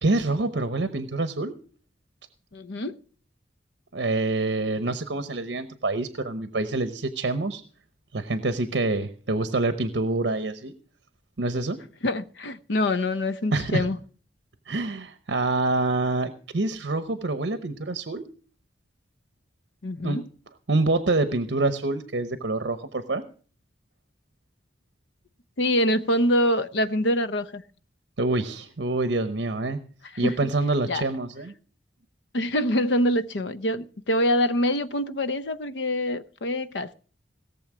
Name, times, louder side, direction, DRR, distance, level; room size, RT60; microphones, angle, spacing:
voice 1, 0.0-1.5 3.9-7.6 8.1-10.7 11.4-11.8 13.5-13.9 14.7-18.2 20.0-20.2 20.7-23.2 28.2-29.8 30.2-31.5, right 2 dB, 70° right, 0.9 m, -26 dB
voice 2, 2.5-3.0 12.0-14.0 19.8-20.2 25.6-27.6 30.2-30.3 30.9-31.0 32.3-36.9, left 1 dB, 75° left, 0.8 m, -25 dB
18.0 x 7.1 x 6.1 m
head